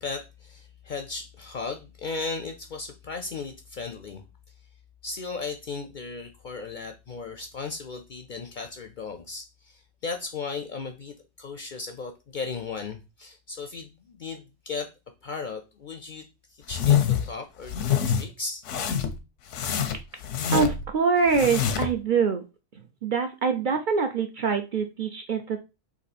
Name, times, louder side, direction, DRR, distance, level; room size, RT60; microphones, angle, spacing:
voice 1, 0.0-4.2 5.0-14.9 15.2-18.6, left 4 dB, 55° left, 6 dB, 0.5 m, -36 dB
sound 1, 16.7-17.3 17.7-18.2 18.7-19.2 19.5-20.9 21.3-22.0, left 9 dB, 85° left, 1.0 m, -25 dB
voice 2, 20.5-22.4 23.0-25.6, right 5 dB, 55° right, 5 dB, 0.6 m, -24 dB
4.1 x 2.9 x 4.1 m, 0.27 s
omnidirectional pair, 1.2 m